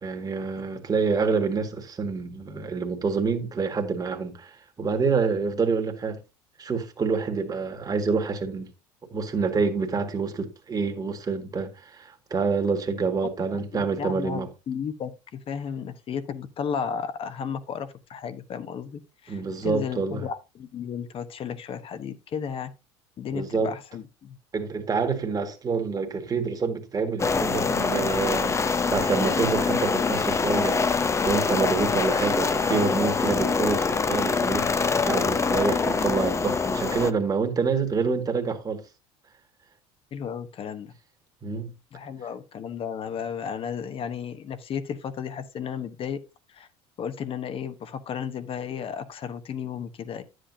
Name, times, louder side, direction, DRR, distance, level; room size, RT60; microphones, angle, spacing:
voice 1, 0.0-6.2 6.6-8.7 9.1-14.5 19.3-20.3 23.3-23.7 24.5-30.8 31.2-34.7 35.0-38.8 41.4-41.7, right 4 dB, 30° right, 1.8 m, -27 dB
voice 2, 13.7-22.7 23.2-24.4 40.1-40.9 41.9-46.2 46.5-46.7 47.0-50.2, left 7 dB, 45° left, 1.0 m, -34 dB
sound 1, 27.2-37.1, left 4 dB, 20° left, 0.6 m, -24 dB
9.9 x 7.9 x 2.6 m
supercardioid pair, 85°, 14 cm